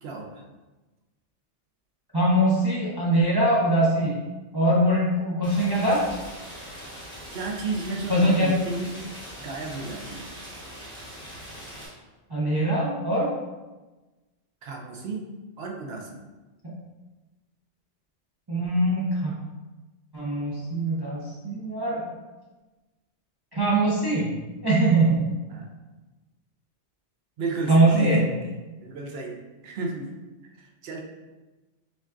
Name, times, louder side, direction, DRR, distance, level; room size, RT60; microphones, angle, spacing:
voice 1, 0.0-0.4 7.3-8.9 9.4-10.3 14.6-15.2 15.6-16.2 25.5-25.8 27.4-28.3 28.8-29.4 29.6-30.2 30.6-31.0, right 3 dB, 65° right, 1 dB, 0.7 m, -32 dB
voice 2, 2.1-4.2 4.5-6.0 8.1-8.5 12.3-13.3 16.6-16.7 18.5-19.3 20.1-22.1 23.5-24.3 24.6-25.2 27.7-28.2, right 1 dB, 35° right, -6 dB, 0.4 m, -22 dB
Rain, 5.4-11.9, equal, 5° left, 0.9 m, -41 dB
5.1 x 2.3 x 2.5 m, 1.2 s
omnidirectional pair, 1.2 m